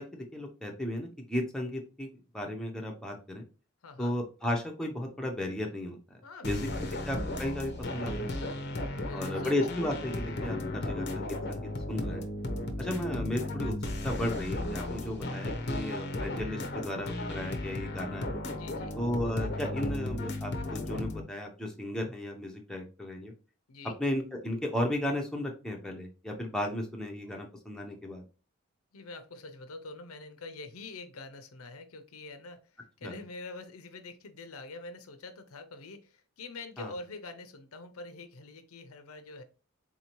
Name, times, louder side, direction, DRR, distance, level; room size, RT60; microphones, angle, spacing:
voice 1, 0.0-2.1 2.3-3.4 4.0-6.2 6.4-6.7 7.1-8.1 8.4-8.6 9.1-12.3 12.8-13.7 14.0-18.4 19.0-23.3 24.0-28.2 33.0-33.1 36.8-36.9, left 1 dB, 5° left, 0 dB, 0.7 m, -34 dB
voice 2, 3.8-4.1 6.2-6.9 8.9-9.6 18.5-19.0 23.7-24.0 28.9-39.4, left 3 dB, 90° left, 9 dB, 0.7 m, -45 dB
sound 1, 6.4-21.2, left 1 dB, 50° left, 0.6 m, -35 dB
4.1 x 2.8 x 2.9 m, 0.34 s
head